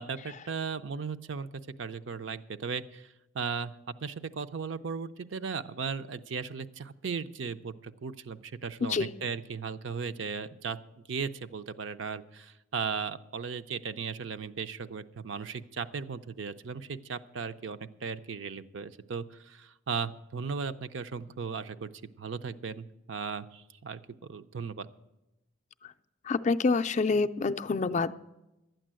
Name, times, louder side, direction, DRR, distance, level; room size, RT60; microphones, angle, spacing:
voice 1, 0.0-1.5 1.8-3.1 3.3-3.7 4.0-10.8 11.1-21.9 22.2-24.9, right 5 dB, 70° right, 10 dB, 0.5 m, -36 dB
voice 2, 26.3-28.1, left 4 dB, 35° left, 10 dB, 0.4 m, -27 dB
12.0 x 9.1 x 7.5 m, 0.96 s
head